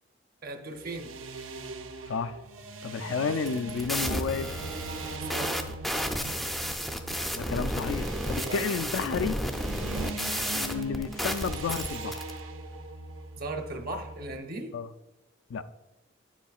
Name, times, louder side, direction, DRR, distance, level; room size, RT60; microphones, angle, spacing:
voice 1, 0.4-1.1 5.0-5.6 8.4-8.8 9.7-10.1 13.4-14.8, right 2 dB, 45° right, 4 dB, 0.8 m, -38 dB
sound 1, 0.7-14.4, right 3 dB, 90° right, 0.7 m, -41 dB
voice 2, 2.8-4.6 7.3-9.4 10.5-12.2 14.7-14.9 15.5-15.7, left 5 dB, 75° left, 11 dB, 0.4 m, -31 dB
sound 2, 3.3-12.3, equal, ahead, 0.4 m, -32 dB
9.2 x 7.1 x 2.4 m, 1.0 s
head